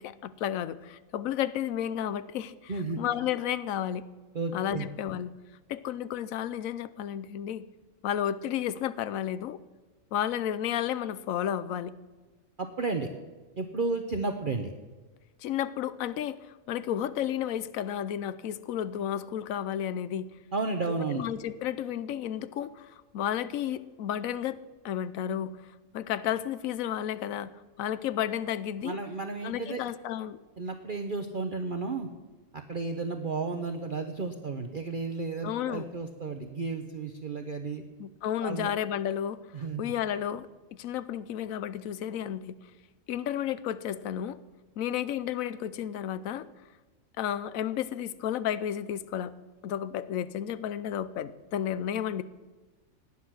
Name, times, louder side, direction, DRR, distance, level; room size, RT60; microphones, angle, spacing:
voice 1, 0.0-4.0 4.5-5.3 5.7-7.6 8.0-9.6 10.1-11.9 15.4-20.3 21.1-24.6 24.8-27.5 27.8-29.0 29.4-30.4 35.4-35.8 38.0-39.4 39.8-40.5 40.8-42.6 43.1-44.4 44.8-46.5 47.2-49.3 49.6-52.2, left 10 dB, 80° left, 15 dB, 1.1 m, -32 dB
voice 2, 2.7-3.0 4.3-4.9 12.6-13.1 13.6-14.7 20.5-21.2 28.8-29.8 30.6-32.1 32.5-37.8 38.4-38.7 39.5-39.9, right 4 dB, 40° right, 5 dB, 1.0 m, -33 dB
18.0 x 10.0 x 6.2 m, 1.3 s
omnidirectional pair, 1.4 m